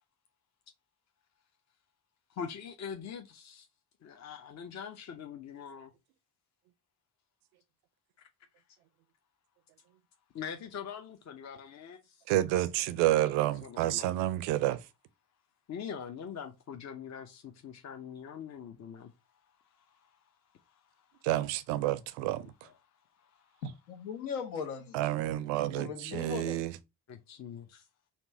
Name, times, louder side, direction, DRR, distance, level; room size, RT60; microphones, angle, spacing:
voice 1, 2.3-3.7 4.0-5.9 10.3-12.2 12.5-12.6 13.6-14.1 15.7-19.1 19.7-20.2 20.5-21.1 22.6-22.7 23.2-23.6 27.1-27.9, left 7 dB, 35° left, 0.8 m, -43 dB
voice 2, 12.3-14.8 21.2-22.5 24.9-26.7, right 15 dB, 65° right, 0.6 m, -29 dB
voice 3, 23.6-25.0 25.6-26.7, left 6 dB, 65° left, 1.4 m, -39 dB
4.3 x 2.6 x 4.2 m
figure-of-eight pair, 40°, 49 cm